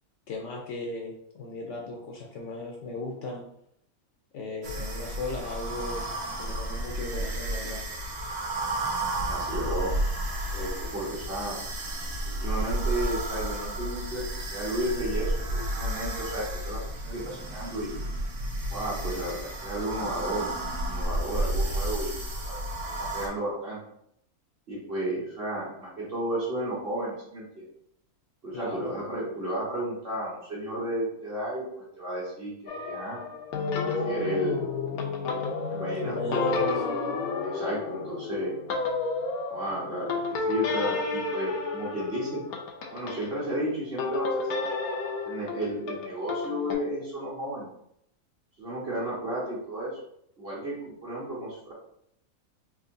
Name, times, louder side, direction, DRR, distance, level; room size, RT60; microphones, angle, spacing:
voice 1, 0.3-3.4 4.3-6.0 6.4-7.8 28.5-29.0 36.0-37.2, left 2 dB, 65° left, 0 dB, 0.8 m, -36 dB
sound 1, 4.6-23.3, right 1 dB, 70° right, 1.1 m, -32 dB
voice 2, 9.2-9.9 10.5-11.6 12.3-14.2 14.5-17.9 18.7-20.5 20.8-22.1 22.4-22.6 23.1-23.8 24.7-27.6 28.4-32.5 32.9-33.2 33.8-34.6 35.7-36.5 37.4-38.5 39.5-42.4 42.9-44.6 45.2-47.7 48.6-49.9 50.4-51.7, right 1 dB, 45° right, -5 dB, 1.3 m, -33 dB
sound 2, 32.7-43.3 44.0-46.8, left 4 dB, 85° left, 1.1 m, -31 dB
3.7 x 2.8 x 2.5 m, 0.73 s
omnidirectional pair, 1.5 m